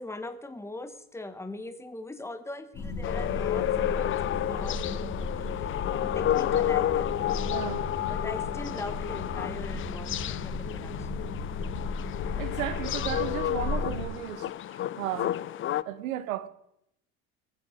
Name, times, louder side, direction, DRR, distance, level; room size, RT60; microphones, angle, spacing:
voice 1, 0.0-11.2, left 2 dB, 5° left, 1.3 m, -42 dB
sound 1, 2.7-14.0, left 3 dB, 45° left, 3.8 m, -35 dB
sound 2, 3.0-15.8, left 12 dB, 30° left, 0.5 m, -31 dB
voice 2, 7.5-7.9 12.4-15.3 15.8-16.5, right 13 dB, 80° right, 0.9 m, -35 dB
20.5 x 7.6 x 5.0 m
hypercardioid pair, 75°, 40 cm